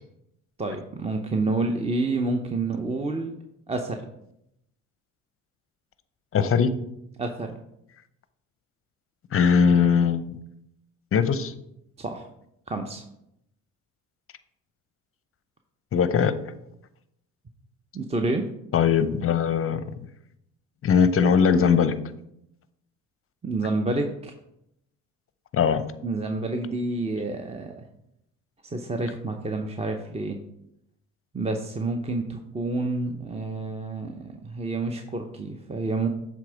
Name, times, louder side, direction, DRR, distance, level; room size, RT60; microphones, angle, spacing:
voice 1, 0.6-3.3 3.7-4.1 7.2-7.5 12.0-12.3 12.7-13.0 17.9-18.5 23.4-24.3 26.0-27.8 28.6-30.4 31.3-36.1, right 2 dB, 15° right, 5 dB, 0.6 m, -29 dB
voice 2, 6.3-6.7 9.3-10.3 11.1-11.5 15.9-16.3 18.7-19.8 20.8-21.9 25.5-25.8, left 6 dB, 35° left, 13 dB, 0.6 m, -20 dB
7.5 x 3.6 x 4.8 m, 0.80 s
hypercardioid pair, 60°, 39 cm